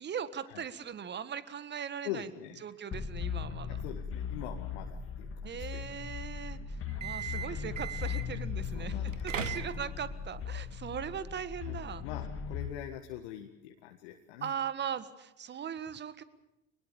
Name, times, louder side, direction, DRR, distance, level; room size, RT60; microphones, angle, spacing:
voice 1, 0.0-2.3 2.6-3.8 5.4-12.0 14.4-16.2, right 8 dB, 30° right, 14 dB, 1.6 m, -39 dB
voice 2, 2.0-2.6 3.7-5.9 8.3-9.8 11.7-14.5, left 12 dB, 60° left, 4 dB, 1.8 m, -44 dB
sound 1, 2.9-12.7, left 7 dB, 35° left, 2.3 m, -38 dB
sound 2, 6.9-8.4 9.0-10.1, right 8 dB, 85° right, 1.4 m, -38 dB
24.5 x 20.0 x 7.1 m, 0.94 s
figure-of-eight pair, 75°, 37 cm